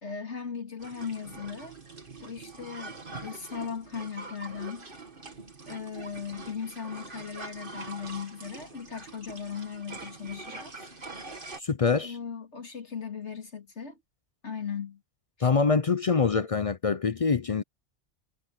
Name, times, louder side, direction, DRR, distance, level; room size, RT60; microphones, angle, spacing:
voice 1, 0.0-1.8 2.2-4.9 5.7-10.7 12.0-14.0 14.4-15.0 15.4-15.5, left 6 dB, 70° left, 2.6 m, -38 dB
sound 1, 0.8-11.6, right 3 dB, 45° right, 2.3 m, -44 dB
voice 2, 11.6-12.2 15.4-17.6, left 5 dB, 45° left, 0.4 m, -25 dB
omnidirectional pair, 1.2 m